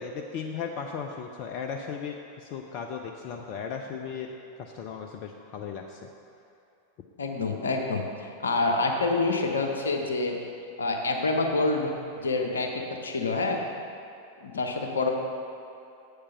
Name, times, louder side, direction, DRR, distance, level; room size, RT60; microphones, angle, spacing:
voice 1, 0.0-4.3 4.6-6.0, left 6 dB, 40° left, 3 dB, 0.5 m, -36 dB
voice 2, 7.2-10.4 10.8-11.9 12.2-12.7 13.0-13.6 14.4-15.1, left 3 dB, 70° left, 2 dB, 1.0 m, -27 dB
8.6 x 6.7 x 5.5 m, 2.6 s
figure-of-eight pair, 90°, 0 cm